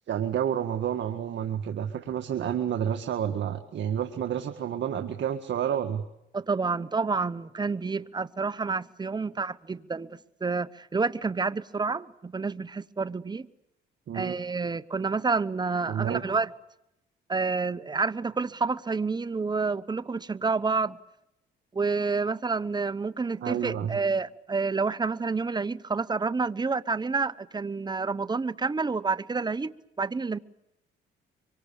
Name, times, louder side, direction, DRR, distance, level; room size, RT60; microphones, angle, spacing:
voice 1, 0.1-6.0 14.1-14.4 15.9-16.2 23.4-24.0, right 9 dB, 65° right, 6 dB, 1.8 m, -29 dB
voice 2, 6.3-13.5 14.1-16.5 17.3-21.0 21.7-30.4, right 4 dB, 20° right, 15 dB, 1.0 m, -29 dB
25.0 x 24.0 x 7.1 m, 0.85 s
cardioid pair, 90°, 20 cm